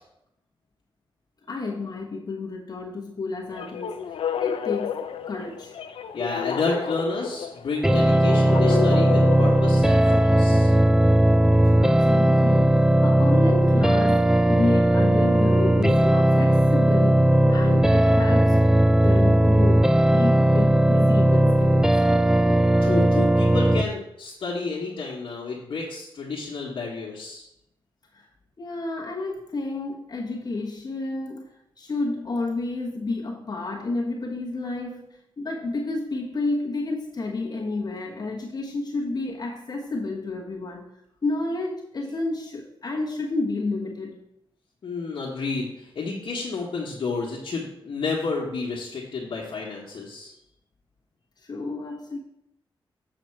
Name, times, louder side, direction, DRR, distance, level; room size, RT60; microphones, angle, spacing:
voice 1, 1.5-4.0 4.4-5.0 5.3-5.8 11.7-22.0 28.1-28.2 28.6-40.8 41.2-44.2 51.4-52.2, left 3 dB, 45° left, -2 dB, 1.2 m, -30 dB
sound 1, 3.5-10.4, left 8 dB, 85° left, 0.5 m, -31 dB
voice 2, 6.1-10.7 22.8-27.5 44.8-50.3, left 4 dB, 65° left, -4 dB, 1.4 m, -30 dB
sound 2, 7.8-23.8, right 1 dB, 5° right, 0.4 m, -18 dB
7.6 x 4.9 x 4.6 m, 0.80 s
cardioid pair, 70°, 9 cm